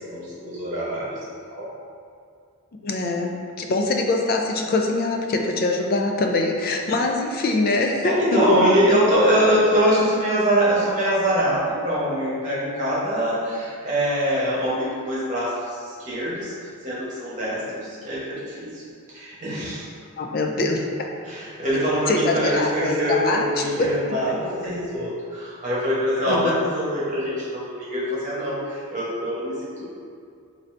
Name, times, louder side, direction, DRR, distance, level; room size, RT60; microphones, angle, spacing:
voice 1, 0.1-1.2 1.5-1.7 8.0-16.5 16.8-18.8 19.1-19.9 21.3-29.9, equal, 35° right, -8 dB, 1.1 m, -23 dB
voice 2, 2.8-8.4 8.9-9.0 20.2-20.9 22.1-23.9 24.3-24.4 26.2-26.6, left 2 dB, 45° left, 2 dB, 0.3 m, -23 dB
3.8 x 2.7 x 3.2 m, 2.3 s
head